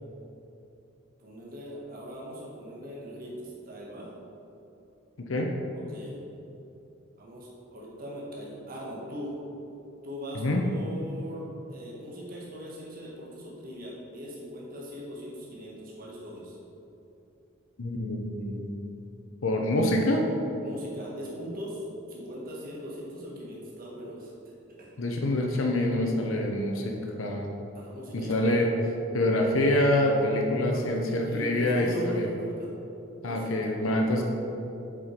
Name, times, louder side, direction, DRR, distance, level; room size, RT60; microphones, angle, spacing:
voice 1, 1.2-4.1 5.7-6.2 7.2-9.3 10.0-16.6 20.6-24.3 24.8-25.0 27.7-28.7 30.7-32.7 33.2-33.5 33.8-33.9, equal, 45° right, -5 dB, 1.4 m, -40 dB
voice 2, 17.8-18.8 19.4-20.2 25.0-27.5 28.1-28.7 29.1-32.3 33.2-34.2, left 1 dB, 80° left, 1 dB, 0.8 m, -26 dB
7.5 x 5.0 x 4.4 m, 2.9 s
head